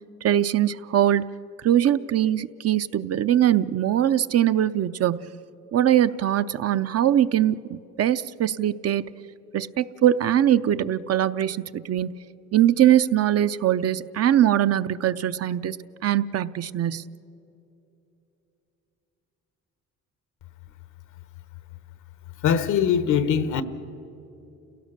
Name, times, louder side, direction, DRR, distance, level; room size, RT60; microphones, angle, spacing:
voice 1, 0.2-1.3 1.6-5.3 5.7-9.0 9.5-12.1 12.5-15.8 16.0-17.0, right 11 dB, 55° right, 0.6 m, -22 dB
voice 2, 22.4-23.6, left 8 dB, 75° left, 1.1 m, -21 dB
29.5 x 17.0 x 6.6 m
cardioid pair, 90°, 30 cm